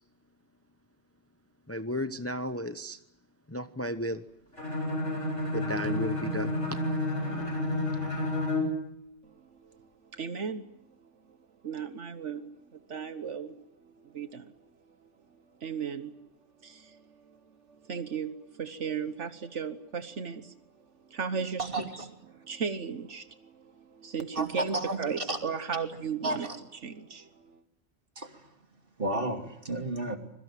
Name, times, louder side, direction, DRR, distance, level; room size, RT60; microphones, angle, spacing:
voice 1, 1.7-3.0 3.5-4.2 5.5-6.5, equal, 15° left, 10 dB, 0.9 m, -33 dB
Bowed string instrument, 4.5-8.8, left 1 dB, 80° left, 8.4 m, -30 dB
voice 2, 9.3-10.7 11.6-13.6 13.8-14.5 15.6-16.1 16.6-17.4 17.8-20.5 21.1-21.7 22.3-26.5 26.8-27.6, right 6 dB, 75° right, 10 dB, 1.5 m, -36 dB
voice 3, 21.6-22.1 24.3-25.4 26.2-26.6 28.2-28.5 29.0-30.2, right 2 dB, 50° right, 5 dB, 3.1 m, -32 dB
25.5 x 22.0 x 9.1 m, 0.78 s
omnidirectional pair, 1.2 m